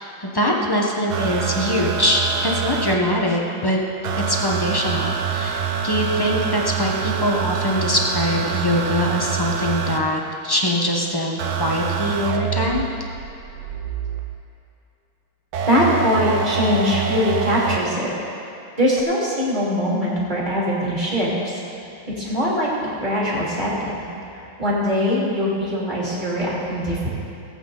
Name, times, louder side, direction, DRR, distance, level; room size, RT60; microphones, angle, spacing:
voice 1, 0.0-3.8 4.2-12.8, left 1 dB, 25° left, -1 dB, 0.5 m, -23 dB
sound 1, 1.1-3.0 4.0-10.0 11.4-14.4 15.5-17.8 19.0-19.1, right 7 dB, 85° right, 1.6 m, -26 dB
voice 2, 15.7-18.1 18.8-21.5 22.2-23.9 24.6-27.1, equal, 20° right, -7 dB, 2.8 m, -22 dB
19.0 x 8.4 x 3.9 m, 2.7 s
omnidirectional pair, 2.2 m